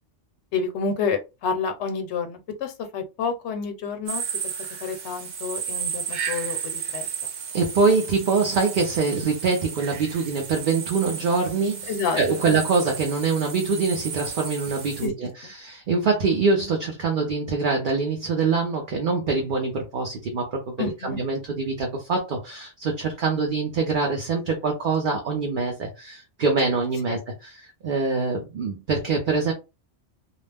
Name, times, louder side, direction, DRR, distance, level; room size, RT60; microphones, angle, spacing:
voice 1, 0.5-4.2 4.8-7.1 11.9-12.6 15.0-15.1 20.8-21.2 27.1-27.2, left 5 dB, 75° left, 0.9 m, -29 dB
sound 1, 4.1-15.1, right 7 dB, 70° right, 1.0 m, -33 dB
voice 2, 7.5-29.5, right 4 dB, 55° right, 0.7 m, -24 dB
2.4 x 2.0 x 3.3 m
omnidirectional pair, 1.2 m